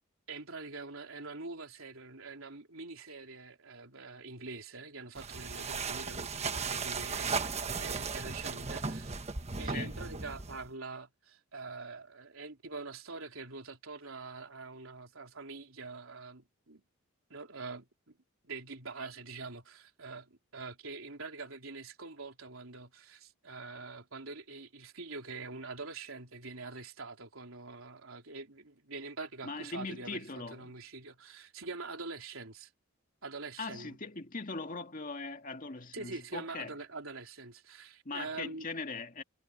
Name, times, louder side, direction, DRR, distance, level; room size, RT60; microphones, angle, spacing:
voice 1, 0.3-9.3 9.6-16.8 17.3-18.1 18.4-30.2 30.5-32.7 33.2-34.0 35.9-38.7, right 3 dB, 75° right, 3.6 m, -44 dB
sound 1, 5.1-10.7, right 4 dB, 30° right, 1.2 m, -36 dB
voice 2, 9.6-10.0 29.4-30.7 33.6-36.8 38.1-39.2, left 3 dB, 40° left, 2.0 m, -40 dB
head